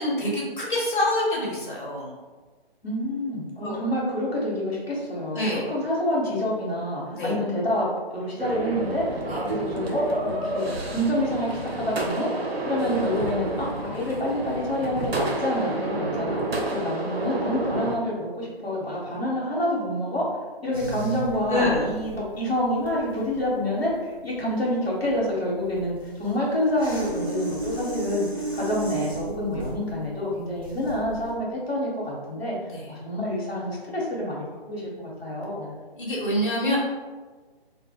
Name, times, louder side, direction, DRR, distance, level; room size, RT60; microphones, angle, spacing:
voice 1, 0.0-2.1 3.6-3.7 5.3-5.6 7.1-7.4 9.3-9.4 21.5-21.9 32.7-32.9 35.9-36.8, left 1 dB, 55° left, -5 dB, 1.0 m, -26 dB
voice 2, 2.8-16.4 16.7-20.3 20.6-32.5 32.9-35.7, left 1 dB, 85° left, -5 dB, 0.9 m, -28 dB
sound 1, 8.4-18.0, right 1 dB, 80° right, 0.6 m, -29 dB
sound 2, 20.7-31.3, right 2 dB, 25° right, 0.4 m, -35 dB
2.2 x 2.0 x 3.4 m, 1.3 s
figure-of-eight pair, 145°, 30 cm